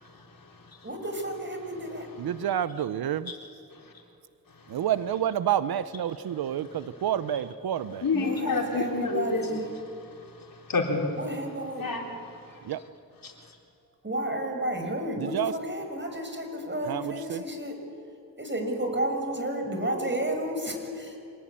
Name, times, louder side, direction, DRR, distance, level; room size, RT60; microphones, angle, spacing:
voice 1, 0.0-0.9 3.3-3.4 3.7-3.9 4.6-4.8 8.0-9.6 10.0-11.2 11.8-12.0 12.3-12.6 13.2-13.3, left 3 dB, 65° left, 1 dB, 4.1 m, -30 dB
voice 2, 0.8-2.1 8.1-9.7 11.2-11.9 14.0-17.8 18.4-21.2, right 1 dB, 30° right, 4 dB, 6.5 m, -32 dB
voice 3, 2.2-3.3 4.7-8.0 12.6-12.8 15.2-15.5 16.8-17.4, right 10 dB, 90° right, 15 dB, 0.8 m, -29 dB
26.5 x 19.0 x 8.9 m, 2.5 s
cardioid pair, 45°, 36 cm